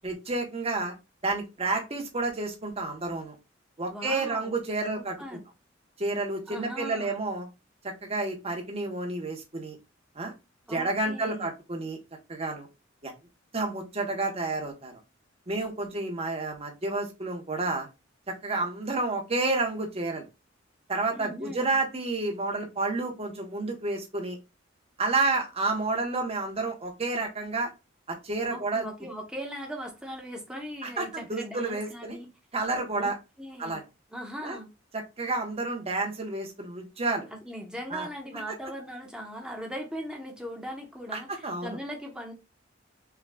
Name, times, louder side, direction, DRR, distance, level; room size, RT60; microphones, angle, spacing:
voice 1, 0.0-0.9 1.2-3.3 3.8-5.2 6.0-7.5 7.8-9.8 10.1-10.3 10.7-12.0 12.3-12.7 13.0-13.1 13.5-14.9 15.5-17.9 18.3-20.3 20.9-24.4 25.0-27.7 28.1-28.9 30.8-32.2 32.5-33.2 33.6-33.8 34.4-34.6 34.9-37.3 37.9-38.1 41.1-41.8, right 3 dB, 30° right, 0.9 m, -30 dB
voice 2, 3.9-4.5 4.9-5.4 6.5-7.2 10.7-11.5 21.1-21.7 28.5-32.3 33.0-33.1 33.4-33.8 34.1-34.7 37.4-42.3, equal, 5° right, 0.9 m, -39 dB
5.6 x 2.3 x 2.2 m
head